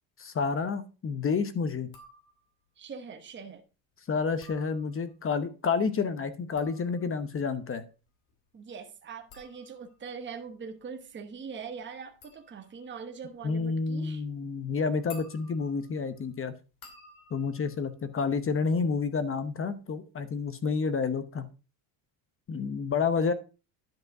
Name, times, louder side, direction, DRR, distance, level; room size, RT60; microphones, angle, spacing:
voice 1, 0.2-1.9 4.1-7.8 13.4-16.5 17.3-21.5 22.5-23.3, left 5 dB, 30° left, 0.9 m, -29 dB
sound 1, 1.9-2.7 4.2-5.3 6.3-19.0 19.3-19.8, left 4 dB, 55° left, 2.5 m, -56 dB
voice 2, 2.8-3.6 8.5-14.2, right 6 dB, 25° right, 1.1 m, -42 dB
10.5 x 5.2 x 4.7 m
cardioid pair, 125°, 47 cm